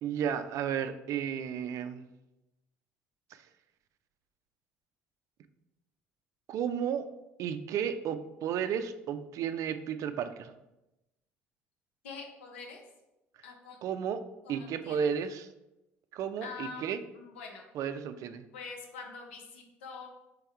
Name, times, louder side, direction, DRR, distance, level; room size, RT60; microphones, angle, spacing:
voice 1, 0.0-2.1 3.3-3.4 6.5-7.1 7.4-10.5 13.8-14.2 14.5-15.5 16.1-17.0 17.7-18.4, right 8 dB, 60° right, 10 dB, 0.4 m, -33 dB
voice 2, 12.0-12.8 13.4-13.8 14.5-15.0 16.4-16.9 17.2-17.6 18.5-20.1, left 4 dB, 90° left, 2 dB, 0.8 m, -44 dB
3.5 x 3.4 x 4.4 m, 0.94 s
hypercardioid pair, 65°, 6 cm